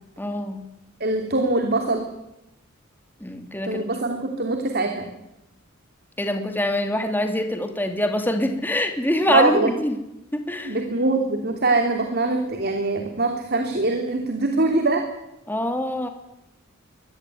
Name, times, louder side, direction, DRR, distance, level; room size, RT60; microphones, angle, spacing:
voice 1, 0.2-0.6 3.2-3.9 6.2-10.0 10.3-10.8 15.5-16.1, left 1 dB, 10° left, 5 dB, 2.8 m, -24 dB
voice 2, 1.0-2.1 3.6-5.1 9.3-9.7 10.6-15.1, right 2 dB, 50° right, 4 dB, 3.1 m, -23 dB
23.0 x 19.5 x 9.3 m, 0.90 s
head